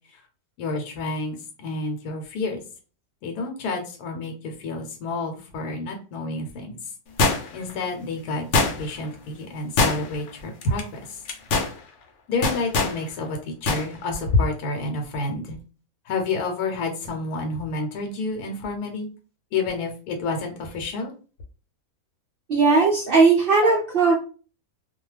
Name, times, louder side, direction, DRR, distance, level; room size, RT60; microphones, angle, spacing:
voice 1, 0.6-2.6 3.2-6.9 7.5-11.2 12.3-15.6 16.0-19.1 19.5-21.1, left 3 dB, 85° left, 3 dB, 1.2 m, -29 dB
sound 1, 7.2-7.7 8.5-9.0 9.8-10.3 10.6-10.8 11.3-11.7 12.4-13.0 13.7-13.9 14.2-14.3, left 3 dB, 65° left, 0.8 m, -22 dB
voice 2, 22.5-24.1, right 4 dB, 90° right, -2 dB, 0.4 m, -18 dB
2.4 x 2.3 x 3.1 m, 0.37 s
omnidirectional pair, 1.6 m